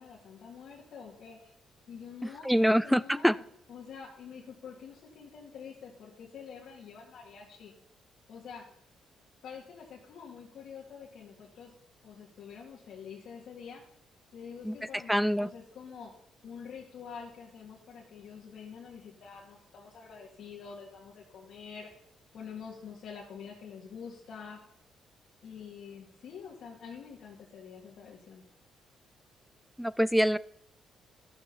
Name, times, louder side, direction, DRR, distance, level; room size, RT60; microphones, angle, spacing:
voice 1, 0.0-1.5 1.9-3.4 3.7-7.7 8.3-8.7 9.4-11.7 12.0-13.8 14.3-16.1 16.4-21.9 22.3-24.6 25.4-28.4, left 6 dB, 70° left, -3 dB, 2.1 m, -47 dB
voice 2, 2.5-3.4 14.7-14.8 15.1-15.5 29.8-30.4, equal, ahead, 20 dB, 0.4 m, -25 dB
13.0 x 7.5 x 5.6 m, 0.71 s
cardioid pair, 90°, 0 cm